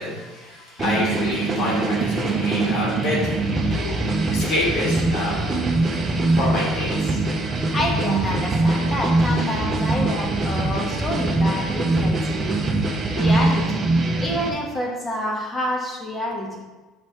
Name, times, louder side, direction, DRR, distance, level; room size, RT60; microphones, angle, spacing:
voice 1, 0.0-5.4 6.3-7.2, left 2 dB, 65° left, -5 dB, 2.0 m, -27 dB
sound 1, 0.8-14.5, right 2 dB, 30° right, 0.8 m, -22 dB
voice 2, 7.7-12.6 13.1-13.8 14.2-16.6, left 1 dB, 15° left, -1 dB, 1.5 m, -28 dB
5.9 x 3.6 x 5.9 m, 1.2 s
supercardioid pair, 110°, 0 cm